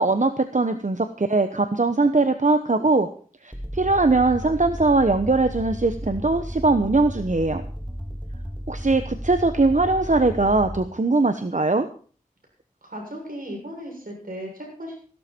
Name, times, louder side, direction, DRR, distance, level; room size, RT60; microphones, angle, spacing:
voice 1, 0.0-3.1 3.4-7.6 8.7-11.9, right 3 dB, 60° right, 9 dB, 1.0 m, -21 dB
sound 1, 3.5-10.8, equal, 10° right, 2.1 m, -34 dB
voice 2, 12.8-15.0, equal, 85° right, 0 dB, 7.2 m, -36 dB
16.0 x 12.5 x 4.5 m, 0.41 s
wide cardioid pair, 40°, 14 cm